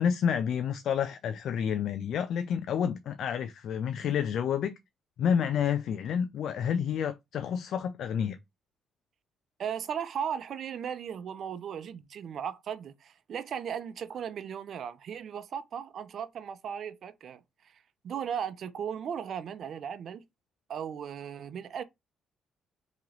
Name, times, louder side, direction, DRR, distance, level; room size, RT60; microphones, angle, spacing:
voice 1, 0.0-4.7 5.2-8.4, left 8 dB, 70° left, 0.3 m, -29 dB
voice 2, 9.6-17.4 18.0-20.2 20.7-21.8, right 8 dB, 60° right, 0.4 m, -36 dB
3.0 x 2.9 x 3.8 m
cardioid pair, 90°, 0 cm